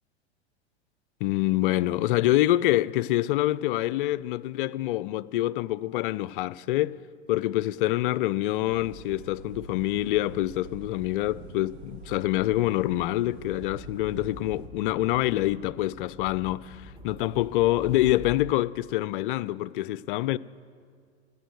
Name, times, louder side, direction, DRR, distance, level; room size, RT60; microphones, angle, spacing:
voice 1, 1.2-7.0 7.3-20.4, left 15 dB, 50° left, 0.4 m, -26 dB
sound 1, 8.7-14.7, right 4 dB, 65° right, 1.5 m, -46 dB
sound 2, 13.5-18.5, left 1 dB, 15° right, 1.7 m, -46 dB
15.0 x 8.3 x 8.0 m
hypercardioid pair, 95°, 33 cm